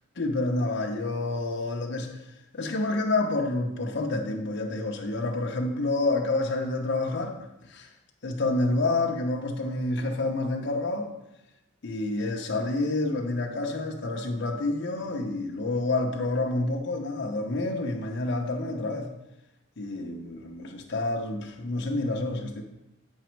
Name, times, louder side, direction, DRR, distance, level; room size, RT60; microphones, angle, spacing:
voice 1, 0.2-2.2 2.5-7.4 7.7-7.9 8.2-11.1 11.8-19.1 19.8-22.6, left 2 dB, 55° left, 1 dB, 0.7 m, -28 dB
8.3 x 5.0 x 4.5 m, 0.93 s
head